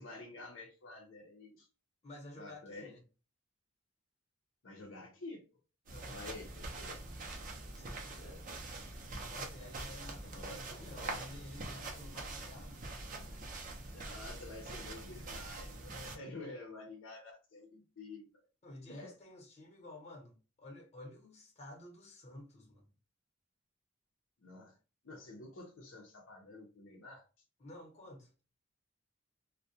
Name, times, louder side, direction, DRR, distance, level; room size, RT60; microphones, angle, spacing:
voice 1, 0.0-1.7 2.4-2.9 4.6-5.4 6.1-6.9 8.1-8.5 10.2-11.2 13.9-18.3 18.9-19.1 24.4-24.8 25.0-27.2, left 2 dB, 70° left, 0.6 m, -49 dB
voice 2, 2.0-3.0 5.9-6.3 7.7-8.1 9.2-13.5 15.1-15.3 15.8-16.2 18.6-22.9 27.6-28.3, left 1 dB, 35° left, 0.9 m, -52 dB
sound 1, 5.9-16.2, right 2 dB, 40° right, 0.5 m, -44 dB
2.3 x 2.1 x 2.6 m
head